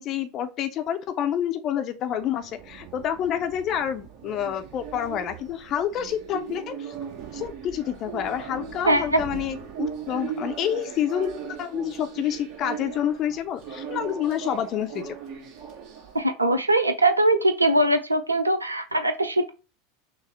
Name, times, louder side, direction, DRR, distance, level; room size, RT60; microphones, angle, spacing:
voice 1, 0.0-6.9 7.3-15.2, left 10 dB, 40° left, 0.6 m, -28 dB
sound 1, 2.1-16.2, right 8 dB, 45° right, 1.4 m, -38 dB
voice 2, 8.8-9.2 16.1-19.5, right 1 dB, 85° right, 0.5 m, -21 dB
6.1 x 2.1 x 3.4 m
figure-of-eight pair, 80°, 0 cm